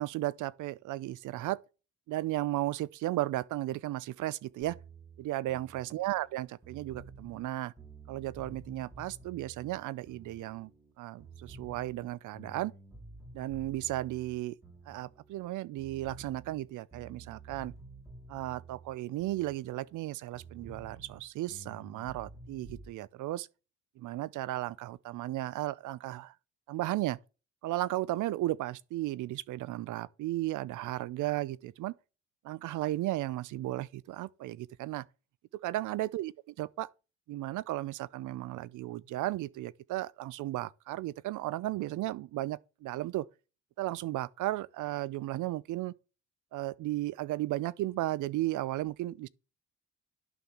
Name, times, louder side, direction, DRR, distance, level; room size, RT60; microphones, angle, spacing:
voice 1, 0.0-1.6 2.1-4.8 5.2-7.7 8.1-10.7 11.0-12.7 13.3-14.5 14.9-17.7 18.3-23.5 24.0-26.3 26.7-27.2 27.6-31.9 32.4-35.0 35.6-36.9 37.3-43.3 43.8-45.9 46.5-49.3, right 16 dB, 80° right, 0.6 m, -35 dB
sound 1, 4.6-10.9 11.2-15.5 15.8-20.1 20.3-22.9, right 3 dB, 10° right, 3.1 m, -51 dB
11.0 x 3.8 x 7.2 m
cardioid pair, 90°, 30 cm